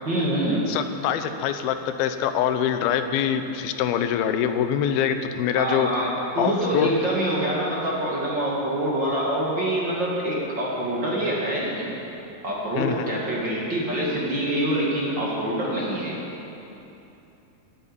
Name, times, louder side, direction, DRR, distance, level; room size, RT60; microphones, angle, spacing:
voice 1, 0.0-0.7 5.5-11.9 12.4-16.3, right 1 dB, 35° right, -4 dB, 2.4 m, -25 dB
voice 2, 0.7-5.9 6.4-6.9 12.8-13.1, left 9 dB, 85° left, 9 dB, 2.7 m, -24 dB
13.5 x 9.8 x 9.8 m, 2.9 s
omnidirectional pair, 4.2 m